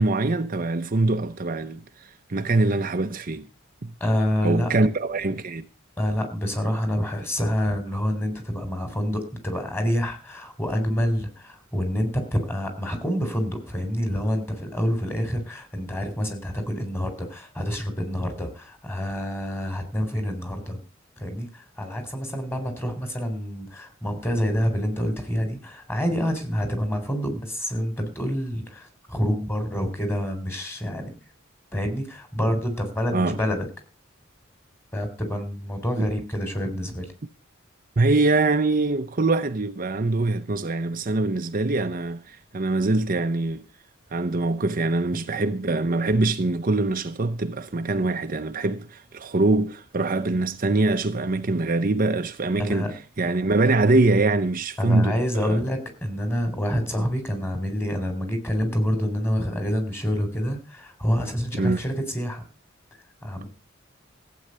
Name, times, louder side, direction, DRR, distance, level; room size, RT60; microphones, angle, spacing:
voice 1, 0.0-3.5 3.8-3.9 4.4-5.7 33.1-33.4 36.0-36.1 38.0-43.6 44.1-52.9 53.2-55.6 61.5-61.8, right 2 dB, 45° right, 0.8 m, -23 dB
voice 2, 4.0-4.8 6.0-20.8 21.2-31.1 31.7-33.7 34.9-37.1 52.6-52.9 54.8-62.4 63.2-63.4, equal, 10° left, 4.3 m, -27 dB
15.5 x 8.7 x 6.8 m
head